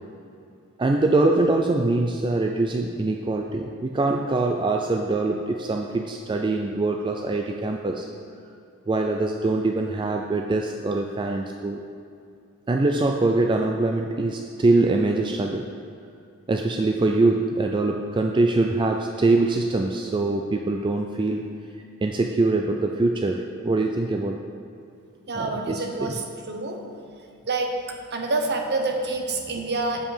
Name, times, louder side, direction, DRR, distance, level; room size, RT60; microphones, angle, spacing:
voice 1, 0.8-8.1 8.9-11.8 12.7-15.7 16.5-21.5 22.0-24.4 25.4-26.1, right 2 dB, 20° right, 3 dB, 0.3 m, -23 dB
voice 2, 25.3-26.8 27.5-27.7 28.1-30.0, right 3 dB, 50° right, 3 dB, 1.0 m, -27 dB
7.7 x 7.4 x 5.0 m, 2.5 s
head